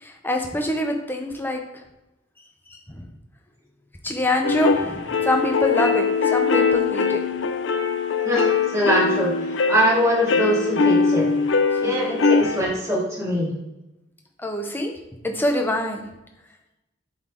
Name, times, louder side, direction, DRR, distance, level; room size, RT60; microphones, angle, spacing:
voice 1, 0.0-1.6 2.7-3.0 4.0-7.2 11.8-12.0 14.4-14.9 15.2-16.0, left 1 dB, 10° left, 3 dB, 0.8 m, -25 dB
sound 1, 4.4-12.6, left 5 dB, 70° left, 0.5 m, -22 dB
voice 2, 8.2-11.3 11.8-13.5, equal, 15° right, -7 dB, 2.4 m, -22 dB
7.6 x 4.1 x 3.7 m, 0.95 s
head